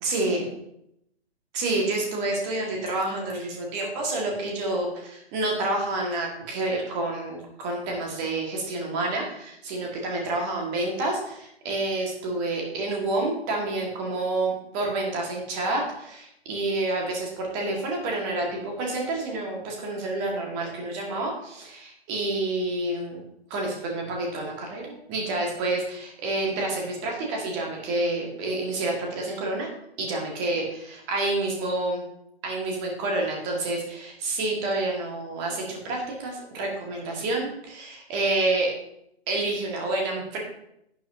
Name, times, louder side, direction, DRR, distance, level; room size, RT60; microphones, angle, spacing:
voice 1, 0.0-0.5 1.5-23.2 23.5-29.7 30.0-32.0 32.4-38.7 39.3-40.4, right 2 dB, 15° right, 0 dB, 1.8 m, -28 dB
11.0 x 9.4 x 2.8 m, 0.76 s
figure-of-eight pair, 140°, 33 cm